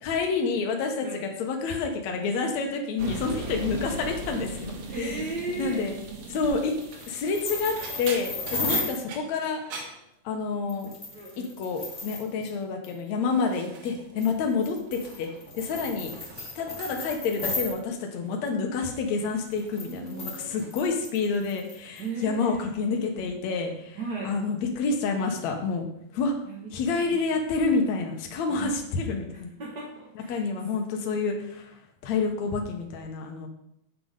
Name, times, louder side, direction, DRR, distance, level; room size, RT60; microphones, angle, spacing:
voice 1, 0.0-5.2 5.6-5.9 6.3-6.8 7.1-9.9 10.2-10.9 11.4-16.1 16.6-25.9 26.1-26.3 26.7-29.5 30.2-33.5, left 4 dB, 70° left, 2 dB, 2.4 m, -28 dB
sound 1, 3.0-8.6, right 4 dB, 60° right, 2.3 m, -39 dB
voice 2, 4.9-5.8 8.6-8.9 11.1-11.5 19.8-20.6 22.0-22.6 24.0-24.3 26.5-26.7 27.0-27.2 28.5-28.9 29.6-30.4, right 3 dB, 40° right, -5 dB, 1.8 m, -36 dB
sound 2, 6.7-7.1 7.7-10.7 11.0-11.4 11.7-12.2 12.9-14.3 14.6-15.4 15.7-17.2 18.1-18.4 18.8-20.9 21.1-21.7 22.0-22.2 23.5-23.6, right 4 dB, 80° right, 2.9 m, -45 dB
sound 3, 6.8-9.0 10.7-12.5 12.8-13.0 14.1-17.7 19.4-22.0, left 3 dB, 20° left, 1.2 m, -35 dB
8.4 x 6.4 x 5.2 m, 0.77 s
omnidirectional pair, 3.3 m